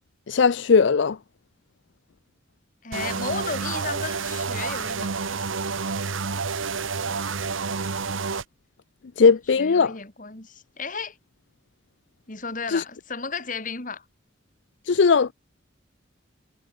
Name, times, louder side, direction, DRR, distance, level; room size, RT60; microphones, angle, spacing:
voice 1, 0.3-1.1 9.2-9.9 12.7-12.8 14.9-15.3, left 5 dB, 65° left, 0.5 m, -18 dB
voice 2, 2.8-5.6 9.4-11.2 12.3-14.0, left 4 dB, 40° left, 2.5 m, -34 dB
sound 1, 2.9-8.4, right 4 dB, 85° right, 1.2 m, -29 dB
head